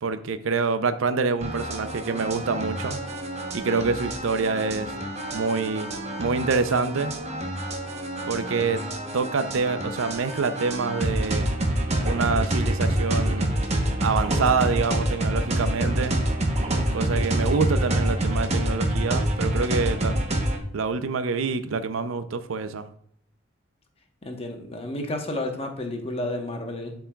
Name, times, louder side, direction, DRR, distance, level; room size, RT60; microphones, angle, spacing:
voice 1, 0.0-3.0 3.5-4.9 5.3-5.9 6.2-7.1 8.3-8.8 9.1-11.5 12.0-13.5 14.0-16.2 16.9-20.2 20.7-22.9, right 4 dB, 80° right, 11 dB, 0.5 m, -26 dB
sound 1, 1.4-20.6, right 1 dB, 35° right, 0.9 m, -27 dB
voice 2, 24.2-26.9, left 1 dB, 30° left, 3 dB, 1.0 m, -31 dB
11.0 x 4.7 x 2.3 m, 0.68 s
head